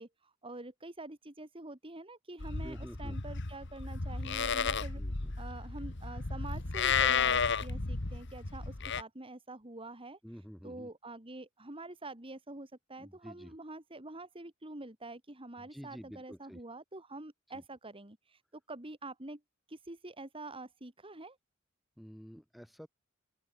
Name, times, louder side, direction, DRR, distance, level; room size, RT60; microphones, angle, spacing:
voice 1, 0.0-5.0 5.4-10.2 10.6-19.4 19.7-21.4, right 2 dB, 25° right, 2.4 m, -46 dB
Livestock farm animals working animals, 2.4-9.0, left 6 dB, 60° left, 1.7 m, -33 dB
voice 2, 2.6-3.2 4.9-5.3 10.2-10.9 13.0-13.5 15.6-16.6 17.5-17.6 22.0-22.9, equal, ahead, 5.7 m, -49 dB
open air
head